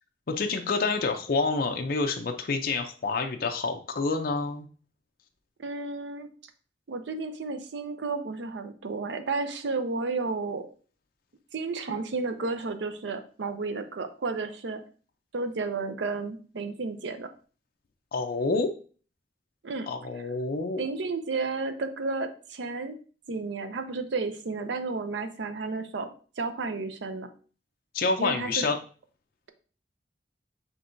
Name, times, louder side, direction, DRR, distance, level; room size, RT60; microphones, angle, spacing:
voice 1, 0.3-4.7 18.1-18.7 19.9-20.8 27.9-28.8, left 3 dB, 55° left, 4 dB, 0.5 m, -28 dB
voice 2, 5.6-6.3 6.9-10.7 11.5-14.8 15.3-17.3 19.6-19.9 20.8-23.0 23.3-26.1 26.4-27.3 28.2-28.6, right 3 dB, 80° right, 9 dB, 0.6 m, -32 dB
5.9 x 3.5 x 2.6 m, 0.40 s
head